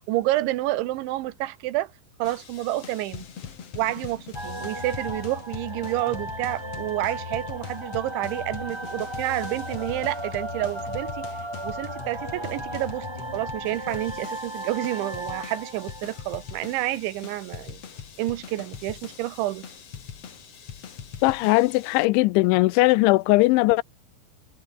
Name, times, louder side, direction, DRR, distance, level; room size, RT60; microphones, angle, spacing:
voice 1, 0.1-1.9 2.2-3.3 3.8-11.3 11.6-13.1 13.3-17.8 18.2-19.7, right 16 dB, 85° right, 3.4 m, -29 dB
sound 1, 2.2-22.1, left 7 dB, 40° left, 2.6 m, -41 dB
sound 2, 4.3-16.9, right 1 dB, 15° right, 1.1 m, -36 dB
voice 2, 21.2-23.8, left 21 dB, 90° left, 3.0 m, -19 dB
omnidirectional pair, 5.3 m